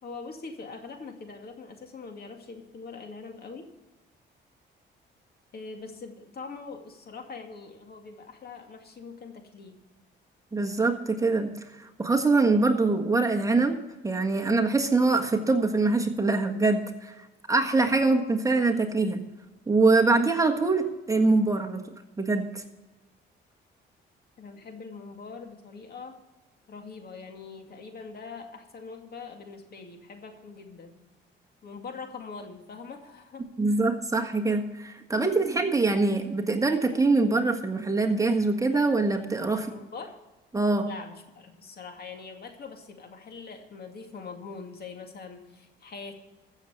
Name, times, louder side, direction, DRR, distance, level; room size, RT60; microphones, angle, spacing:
voice 1, 0.0-3.7 5.5-9.8 24.4-26.2 26.7-31.0 31.6-33.8 39.5-40.2 40.8-46.1, left 4 dB, 50° left, 4 dB, 2.3 m, -43 dB
voice 2, 10.5-19.2 19.7-21.8 22.2-22.6 33.6-39.7 40.5-40.9, right 3 dB, 15° right, 3 dB, 1.5 m, -24 dB
14.5 x 7.3 x 6.6 m, 1.1 s
cardioid pair, 90°, 20 cm